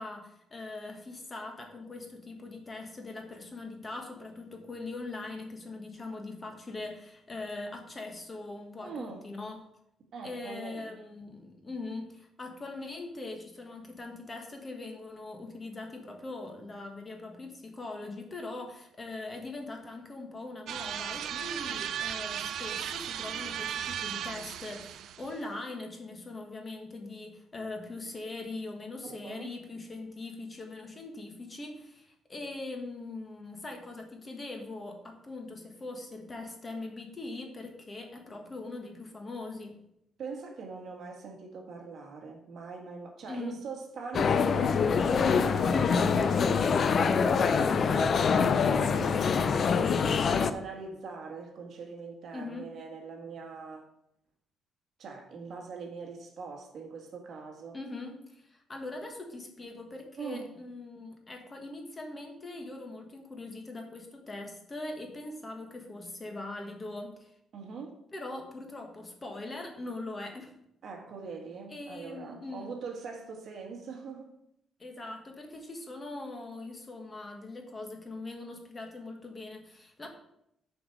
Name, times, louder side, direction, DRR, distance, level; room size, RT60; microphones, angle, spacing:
voice 1, 0.0-9.6 10.2-39.8 43.3-43.6 52.3-52.7 57.7-67.3 68.1-70.5 71.7-72.7 74.8-80.1, left 2 dB, 20° left, 3 dB, 1.4 m, -41 dB
voice 2, 8.8-9.3 10.1-11.0 29.0-29.5 40.2-53.8 55.0-57.8 60.2-60.5 67.5-68.0 70.8-74.3, right 4 dB, 55° right, 2 dB, 1.6 m, -42 dB
sound 1, 20.7-25.4, right 9 dB, 70° right, 0.4 m, -36 dB
sound 2, 44.1-50.5, left 6 dB, 40° left, 0.5 m, -25 dB
7.7 x 4.7 x 6.5 m, 0.77 s
cardioid pair, 145°, 0 cm